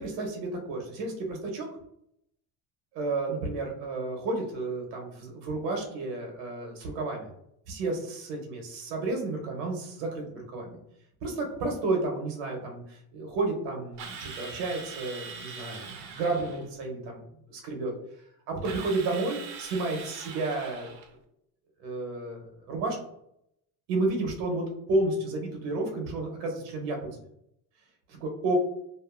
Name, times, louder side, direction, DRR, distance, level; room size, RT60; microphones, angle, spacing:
voice 1, 0.0-1.7 2.9-7.3 7.7-10.8 11.2-17.2 17.5-17.9 18.5-21.0 21.8-23.0 23.9-27.1 28.2-28.5, right 2 dB, 90° right, 1 dB, 1.0 m, -31 dB
Drill, 14.0-16.7 18.6-21.1, right 5 dB, 65° right, 0.7 m, -42 dB
2.6 x 2.5 x 2.4 m, 0.74 s
cardioid pair, 150°, 41 cm